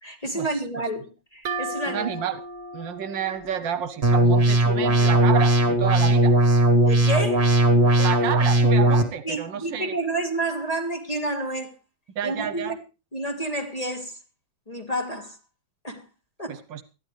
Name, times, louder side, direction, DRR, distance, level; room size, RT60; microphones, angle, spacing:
voice 1, 0.0-2.2 6.8-7.5 9.0-11.7 12.2-12.8 13.1-14.2 14.7-15.4 15.8-16.0 16.4-16.6, right 1 dB, 20° left, 1.7 m, -30 dB
sound 1, 1.4-5.0, right 2 dB, 50° right, 2.5 m, -36 dB
voice 2, 1.9-2.4 2.7-6.4 8.0-9.9 12.1-12.8 16.5-16.8, right 9 dB, 70° right, 1.6 m, -30 dB
sound 2, 4.0-9.0, right 1 dB, 35° right, 2.0 m, -18 dB
20.5 x 13.0 x 3.3 m
omnidirectional pair, 2.1 m